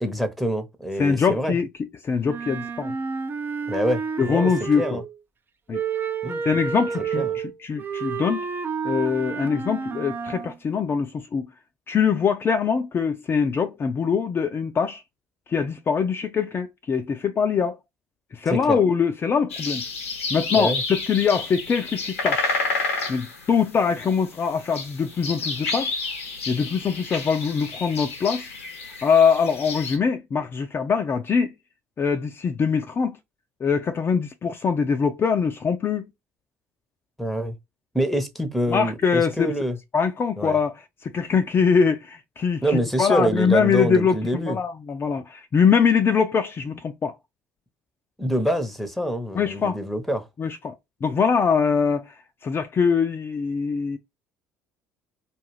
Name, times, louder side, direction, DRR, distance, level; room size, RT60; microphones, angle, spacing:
voice 1, 0.0-1.6 3.7-4.5 4.8-5.0 6.2-6.4 7.2-7.3 18.4-18.8 20.5-20.8 37.2-37.5 37.9-39.8 40.4-40.6 42.6-44.6 48.2-50.2, equal, ahead, 0.8 m, -25 dB
voice 2, 1.0-1.7 2.0-3.0 4.2-5.0 5.7-5.8 6.4-8.4 8.8-11.5 11.9-15.0 15.5-17.8 18.3-19.8 20.3-22.5 23.1-26.0 26.5-28.5 29.0-31.5 32.0-33.2 33.6-36.1 38.7-39.5 39.9-47.1 49.3-49.8 50.4-50.7 51.0-52.1 52.4-54.0, left 6 dB, 35° left, 0.4 m, -23 dB
Wind instrument woodwind instrument, 2.2-5.2 5.7-10.6, right 6 dB, 30° right, 0.5 m, -30 dB
sound 1, 19.5-30.0, left 3 dB, 85° left, 0.7 m, -30 dB
2.4 x 2.4 x 3.2 m
hypercardioid pair, 60°, 7 cm